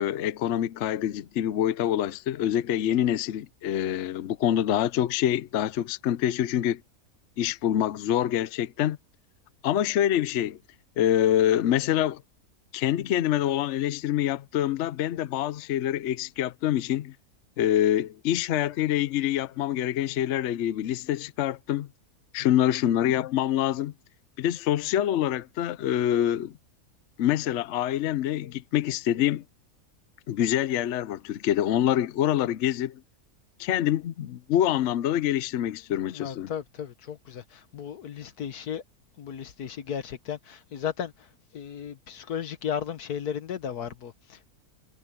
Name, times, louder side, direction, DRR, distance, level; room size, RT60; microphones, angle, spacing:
voice 1, 0.0-6.8 7.4-9.0 9.6-10.6 11.0-12.2 12.7-17.1 17.6-21.9 22.3-23.9 24.4-26.6 27.2-29.4 30.3-33.0 33.6-36.5, left 11 dB, 60° left, 0.9 m, -26 dB
voice 2, 36.1-38.8 39.2-41.3 41.5-44.5, left 8 dB, 85° left, 1.7 m, -35 dB
omnidirectional pair, 1.6 m